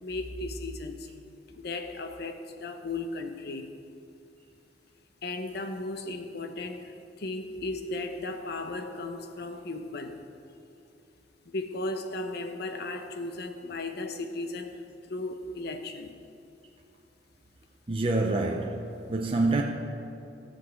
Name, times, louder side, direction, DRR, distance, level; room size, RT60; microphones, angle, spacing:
voice 1, 0.0-1.1 1.6-3.7 5.2-10.2 11.5-16.2, left 2 dB, 60° left, 0.9 m, -36 dB
voice 2, 17.9-19.6, right 2 dB, 30° right, 0.6 m, -27 dB
14.5 x 5.6 x 8.1 m
head